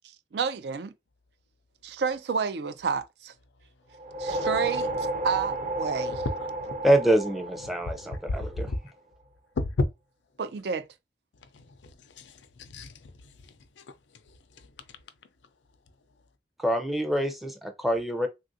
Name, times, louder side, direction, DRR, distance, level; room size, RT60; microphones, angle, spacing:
voice 1, 0.3-0.9 1.8-3.3 4.2-6.2 10.4-10.9, right 5 dB, 65° right, 0.4 m, -30 dB
sound 1, 3.9-8.5, right 2 dB, 40° right, 0.8 m, -32 dB
voice 2, 6.8-8.7 16.6-18.3, right 1 dB, ahead, 0.5 m, -25 dB
voice 3, 7.6-8.1 8.7-8.8 9.6-9.9 11.5-11.9 12.2-13.1 13.8-13.9, left 2 dB, 85° left, 0.5 m, -32 dB
3.3 x 2.4 x 2.6 m
head